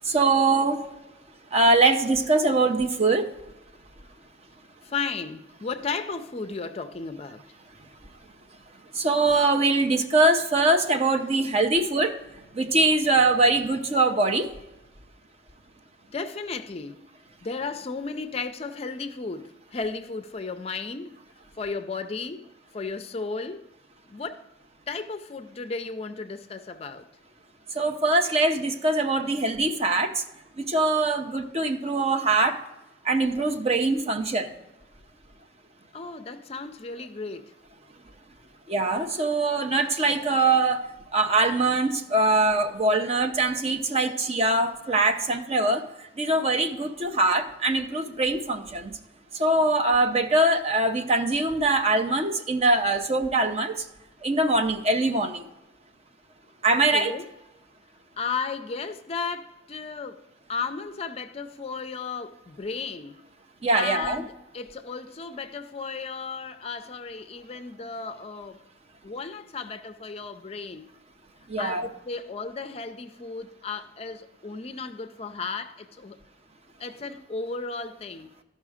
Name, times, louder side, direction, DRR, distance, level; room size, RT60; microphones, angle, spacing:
voice 1, 0.0-0.8 1.5-3.3 8.9-12.1 12.5-14.5 27.7-30.2 30.6-32.6 33.0-34.5 38.7-49.0 49.3-53.9 54.2-55.5 56.6-57.1 63.6-64.2 71.5-71.9, right 2 dB, 35° right, 0.7 m, -23 dB
voice 2, 4.8-7.4 16.1-17.0 17.4-21.2 21.6-22.5 22.7-23.7 24.1-24.5 24.9-27.1 35.9-37.5 56.7-57.3 58.2-60.2 60.5-63.2 63.7-68.6 69.0-70.9 71.6-76.2 76.8-78.3, left 4 dB, 35° left, 0.4 m, -34 dB
13.0 x 5.5 x 4.9 m
head